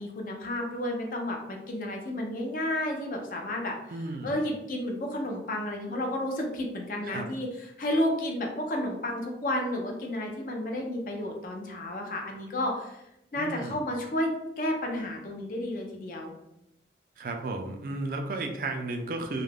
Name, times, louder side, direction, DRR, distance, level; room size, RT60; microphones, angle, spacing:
voice 1, 0.0-3.7 4.2-13.0 13.3-16.3, left 1 dB, 50° left, 1 dB, 0.5 m, -31 dB
voice 2, 3.9-4.4 7.0-7.3 13.3-13.8 17.2-19.4, right 2 dB, 50° right, 4 dB, 0.3 m, -34 dB
2.3 x 2.1 x 3.3 m, 0.86 s
head